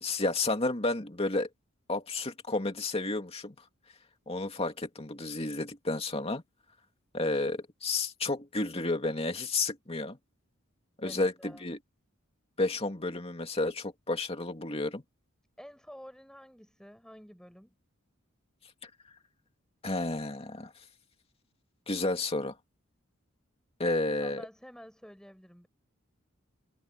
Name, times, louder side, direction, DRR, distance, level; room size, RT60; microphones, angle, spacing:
voice 1, 0.0-1.5 1.9-3.6 4.3-6.4 7.1-10.2 11.0-11.8 12.6-15.0 19.8-20.7 21.9-22.5 23.8-24.4, left 2 dB, 30° left, 2.5 m, -31 dB
voice 2, 11.0-11.7 15.6-17.7 23.8-25.7, equal, 5° left, 6.5 m, -50 dB
head